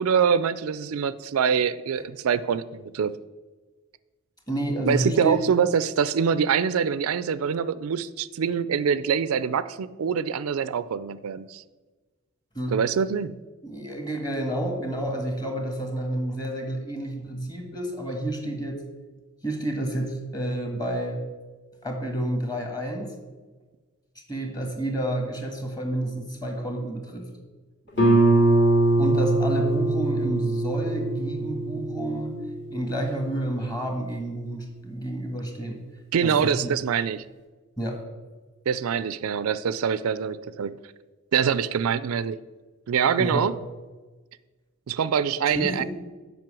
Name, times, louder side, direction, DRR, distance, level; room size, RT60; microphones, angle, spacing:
voice 1, 0.0-3.1 4.9-11.6 12.7-13.4 36.1-37.2 38.7-40.8 41.3-42.4 42.9-43.5 44.9-45.8, right 7 dB, 80° right, 15 dB, 0.4 m, -24 dB
voice 2, 4.5-5.4 12.5-12.8 13.6-18.8 19.4-21.2 21.8-23.1 24.3-27.2 29.0-32.3 32.7-35.8 36.2-36.7 37.8-38.0 43.2-43.5 45.5-45.8, right 1 dB, 20° left, 3 dB, 1.6 m, -29 dB
Guitar, 28.0-33.4, right 2 dB, 60° left, 2.7 m, -23 dB
7.6 x 5.4 x 7.5 m, 1.3 s
head